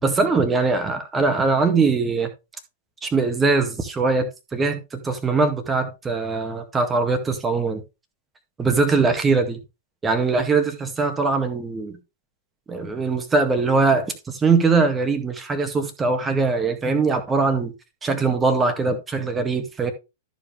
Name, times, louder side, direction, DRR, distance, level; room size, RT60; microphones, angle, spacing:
voice 1, 0.0-2.3 3.0-7.8 8.6-9.6 10.0-12.0 12.7-17.7 18.0-19.9, right 4 dB, 15° right, 1.9 m, -21 dB
13.5 x 5.1 x 3.4 m
figure-of-eight pair, 105°, 0 cm